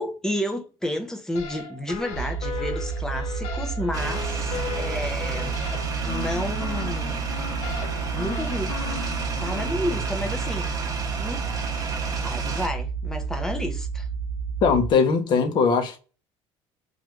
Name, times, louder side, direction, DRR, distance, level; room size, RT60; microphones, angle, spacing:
voice 1, 0.0-5.6 6.0-7.2 8.1-8.7 9.4-10.7 11.2-11.5 12.2-14.1, left 1 dB, 5° left, 0.5 m, -31 dB
sound 1, 1.3-9.7, left 6 dB, 70° left, 0.8 m, -36 dB
sound 2, 2.1-14.9, right 6 dB, 65° right, 0.4 m, -30 dB
sound 3, 3.9-12.7, right 4 dB, 35° right, 0.8 m, -33 dB
voice 2, 14.6-16.0, left 5 dB, 45° left, 0.7 m, -20 dB
3.1 x 2.4 x 2.9 m
cardioid pair, 170°, 11 cm